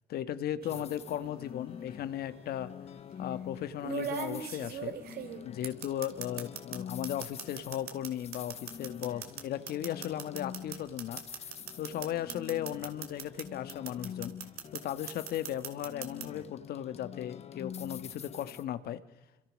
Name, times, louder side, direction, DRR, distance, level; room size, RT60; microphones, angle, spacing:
voice 1, 0.1-2.7 3.2-5.0 5.4-11.2 11.8-14.4 14.7-19.0, left 11 dB, 65° left, 12 dB, 1.5 m, -36 dB
sound 1, 0.6-1.0 2.2-2.3 3.8-6.8 7.0-13.4 13.7-14.8 15.1-16.3, right 8 dB, 65° right, 3.0 m, -39 dB
sound 2, 0.7-18.6, left 8 dB, 40° left, 1.0 m, -46 dB
27.5 x 25.5 x 6.4 m, 1.1 s
cardioid pair, 110°, 17 cm